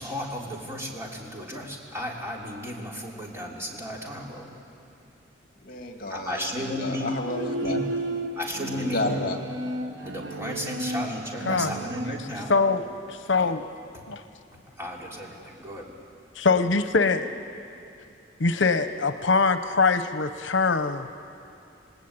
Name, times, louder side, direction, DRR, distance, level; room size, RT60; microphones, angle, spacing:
voice 1, 0.0-4.5 6.1-7.1 7.6-7.8 8.4-9.1 10.0-12.5 13.3-13.5 14.8-15.9, equal, 15° right, -2 dB, 3.4 m, -34 dB
voice 2, 5.6-7.8 8.8-9.4, left 2 dB, 50° left, 3 dB, 2.3 m, -31 dB
Bowed string instrument, 7.2-12.2, right 2 dB, 80° right, 1.2 m, -33 dB
voice 3, 12.5-13.6 14.1-14.2 16.4-17.3 18.4-21.1, left 4 dB, 80° left, 10 dB, 0.9 m, -23 dB
28.5 x 19.5 x 8.9 m, 2.7 s
head